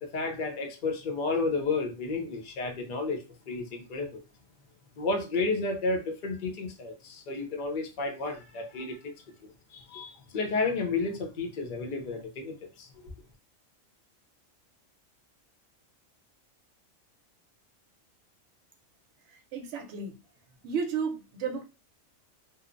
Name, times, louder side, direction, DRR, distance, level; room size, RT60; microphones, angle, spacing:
voice 1, 0.0-4.2 5.0-9.1 9.4-12.9, left 3 dB, 50° left, 0.6 m, -32 dB
voice 2, 19.3-20.2 20.6-21.6, right 6 dB, 70° right, 0.9 m, -33 dB
2.7 x 2.0 x 2.4 m
omnidirectional pair, 1.4 m